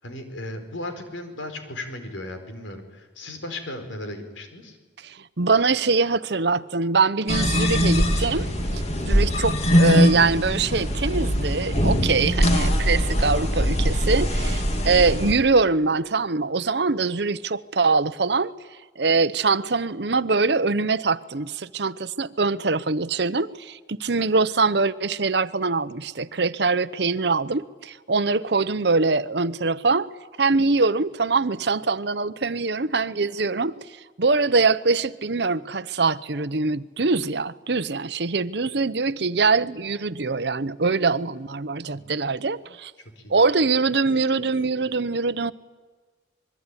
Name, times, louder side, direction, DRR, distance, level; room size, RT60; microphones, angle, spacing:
voice 1, 0.0-4.8 41.9-42.1 43.2-43.4, left 1 dB, 90° left, 4.8 m, -36 dB
voice 2, 5.0-8.5 8.7-18.5 19.0-30.1 30.4-33.7 34.2-42.9 43.3-45.5, right 4 dB, 60° right, 0.9 m, -23 dB
sound 1, 7.3-15.3, equal, 35° left, 2.9 m, -22 dB
26.0 x 22.0 x 9.9 m
head